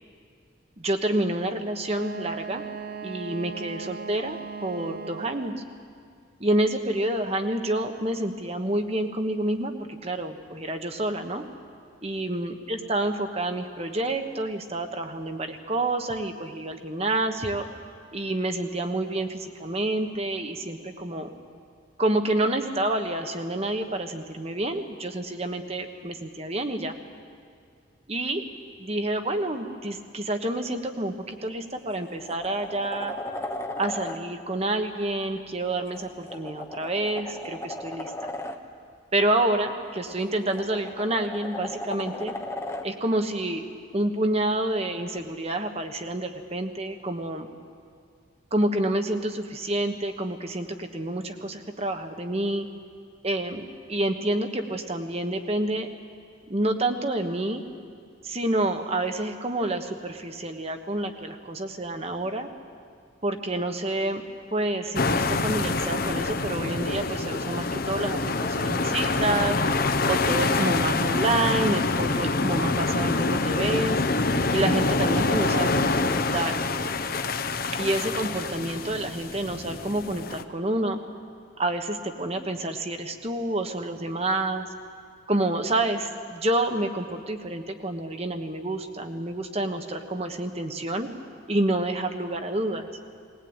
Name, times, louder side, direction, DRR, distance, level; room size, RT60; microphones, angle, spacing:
voice 1, 0.8-2.6 3.0-5.5 6.4-9.7 10.0-11.4 12.0-17.7 18.1-21.3 22.0-26.9 28.1-28.4 28.8-33.1 33.8-38.1 39.1-42.3 42.8-43.6 43.9-47.5 48.5-52.7 53.2-53.6 53.9-55.9 56.5-57.6 58.2-62.5 63.2-64.2 64.5-69.6 70.1-74.0 74.5-76.5 77.7-81.0 81.6-84.7 85.3-91.1 91.5-92.9, right 1 dB, 30° right, 6 dB, 1.3 m, -28 dB
Wind instrument woodwind instrument, 1.9-5.6, right 5 dB, 50° right, 0.6 m, -38 dB
sound 1, 31.3-31.5 31.9-34.2 35.8-38.6 40.1-42.9 45.2-45.3, left 1 dB, 15° left, 1.1 m, -36 dB
sound 2, 64.9-80.4, left 3 dB, 50° left, 0.9 m, -26 dB
20.0 x 19.5 x 9.0 m, 2.3 s
head